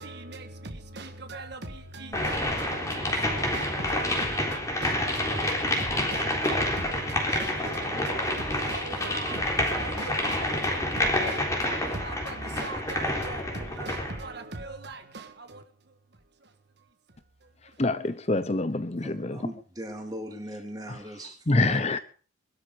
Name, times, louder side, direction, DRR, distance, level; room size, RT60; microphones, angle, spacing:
voice 1, 0.0-16.0 16.4-16.5 17.4-17.8, right 2 dB, 55° right, 1.7 m, -40 dB
sound 1, 2.1-14.2, left 1 dB, 15° left, 3.7 m, -28 dB
voice 2, 17.8-19.5 21.5-22.0, left 2 dB, 30° left, 0.8 m, -26 dB
voice 3, 19.0-22.0, equal, 20° right, 3.4 m, -39 dB
21.5 x 12.5 x 5.1 m
head